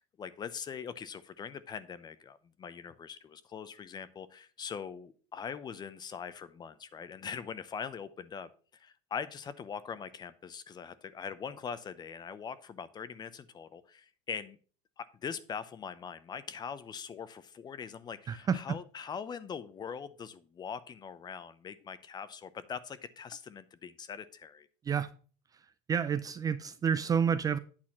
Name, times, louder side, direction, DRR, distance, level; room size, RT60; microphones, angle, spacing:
voice 1, 0.0-14.6 15.0-24.7, left 6 dB, 25° left, 0.6 m, -42 dB
voice 2, 18.3-18.8 24.8-25.1 25.5-27.6, right 7 dB, 25° right, 0.4 m, -30 dB
8.7 x 4.2 x 5.5 m
supercardioid pair, 120°, 16 cm